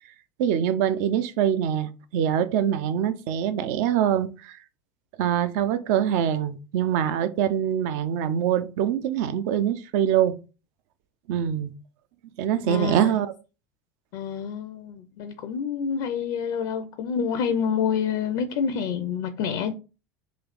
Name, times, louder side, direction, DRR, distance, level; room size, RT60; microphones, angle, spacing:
voice 1, 0.4-4.6 5.2-10.3 11.3-11.7 12.4-13.3, right 9 dB, 60° right, 0.4 m, -24 dB
voice 2, 12.7-13.1 14.1-19.7, left 7 dB, 60° left, 0.4 m, -27 dB
3.2 x 2.4 x 3.9 m
hypercardioid pair, 75°, 9 cm